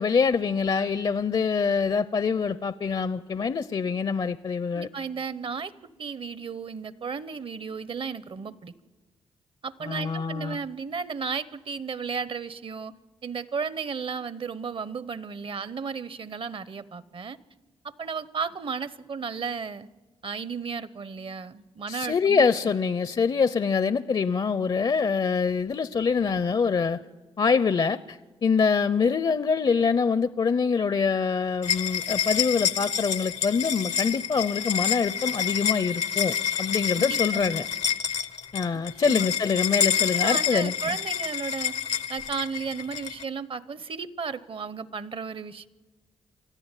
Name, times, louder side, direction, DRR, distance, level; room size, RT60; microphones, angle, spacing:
voice 1, 0.0-4.9 9.8-10.6 21.9-27.0 27.4-37.6 38.5-40.7, left 5 dB, 45° left, 15 dB, 0.6 m, -25 dB
voice 2, 4.7-5.7 6.0-8.7 9.6-12.9 13.2-17.4 17.8-19.9 20.2-22.7 37.0-37.7 38.7-39.3 40.0-41.8 42.1-45.7, right 5 dB, 55° right, 16 dB, 0.9 m, -34 dB
sound 1, 31.6-43.2, left 8 dB, 80° left, 0.8 m, -28 dB
24.5 x 14.0 x 9.0 m, 1.3 s
cardioid pair, 55°, 11 cm